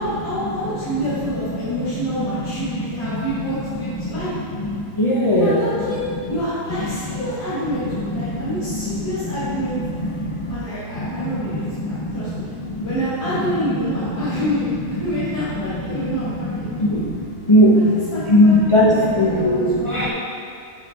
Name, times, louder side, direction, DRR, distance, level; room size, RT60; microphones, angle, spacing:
voice 1, 0.0-4.3 5.3-6.0 6.3-9.8 10.5-12.5 12.8-16.7 17.7-20.1, equal, 75° left, -14 dB, 2.4 m, -27 dB
voice 2, 1.8-2.3 3.2-3.3 3.8-4.1 5.0-5.5 6.9-7.0 7.9-9.0 10.0-10.6 11.0-11.2 11.5-12.9 14.1-14.4 15.9-16.1 16.6-17.9 18.3-20.1, equal, 45° left, -5 dB, 0.4 m, -19 dB
8.2 x 6.6 x 2.8 m, 2.5 s
omnidirectional pair, 1.8 m